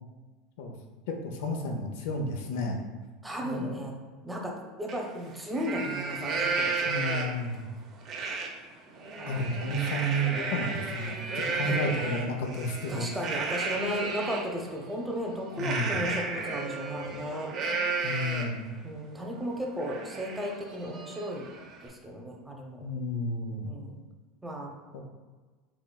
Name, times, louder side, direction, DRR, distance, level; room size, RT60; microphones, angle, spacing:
voice 1, 1.1-2.8 3.4-3.9 6.9-7.6 9.3-13.1 15.6-15.9 18.0-18.6 22.8-23.7 24.9-25.0, equal, 75° left, 2 dB, 0.4 m, -32 dB
voice 2, 3.2-3.9 4.2-4.5 4.8-6.9 9.2-9.4 11.6-11.8 12.9-17.5 18.8-21.5 21.8-22.9 23.6-24.0 24.4-24.7, equal, 10° right, 0 dB, 0.7 m, -35 dB
Livestock farm animals working animals, 4.9-5.0 5.4-7.5 8.1-8.5 8.9-14.5 15.6-18.6 19.1-19.2 19.5-21.9, right 4 dB, 45° right, 0.6 m, -33 dB
3.7 x 3.0 x 2.2 m, 1.3 s
hypercardioid pair, 85°, 0 cm